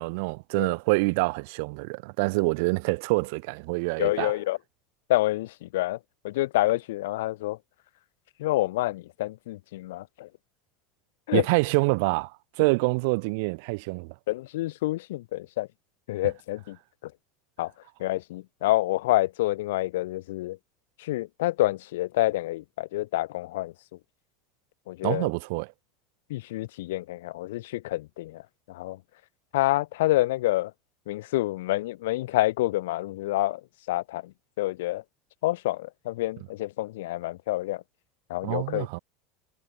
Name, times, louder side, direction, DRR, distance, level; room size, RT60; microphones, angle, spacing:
voice 1, 0.0-4.3 11.3-14.1 25.0-25.7 38.4-39.0, right 28 dB, 60° right, 1.1 m, -26 dB
voice 2, 4.0-4.6 5.1-6.0 6.2-7.6 8.4-10.3 11.3-11.4 14.3-15.7 16.1-16.8 17.0-17.1 17.6-17.7 18.0-20.6 21.0-23.7 24.9-25.3 26.3-28.4 28.7-29.0 29.5-30.7 31.1-33.6 33.9-35.0 35.4-37.8 38.3-38.9, left 17 dB, 85° left, 0.7 m, -28 dB
supercardioid pair, 170°, 0 cm